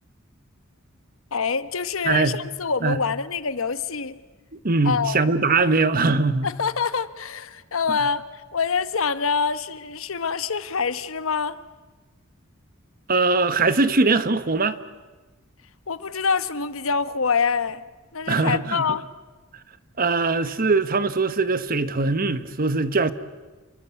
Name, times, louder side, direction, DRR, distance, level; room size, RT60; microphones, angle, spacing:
voice 1, 1.3-4.2 4.8-5.5 6.4-11.6 15.9-17.9 18.1-19.1, left 5 dB, 80° left, 1.1 m, -26 dB
voice 2, 2.1-2.4 2.8-3.0 4.6-6.5 13.1-14.8 18.3-18.8 20.0-23.1, right 3 dB, 45° right, 1.2 m, -21 dB
29.0 x 23.0 x 8.4 m
head